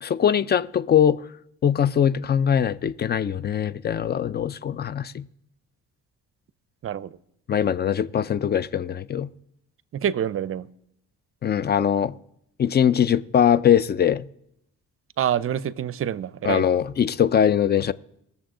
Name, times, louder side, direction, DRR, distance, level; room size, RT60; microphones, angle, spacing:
voice 1, 0.0-1.2 1.6-5.2 7.5-9.3 11.4-12.1 12.6-14.3 16.4-17.9, left 9 dB, 35° left, 0.4 m, -21 dB
voice 2, 6.8-7.2 9.9-10.7 15.2-16.7, right 9 dB, 45° right, 0.6 m, -26 dB
20.0 x 7.0 x 3.8 m
cardioid pair, 90°, 30 cm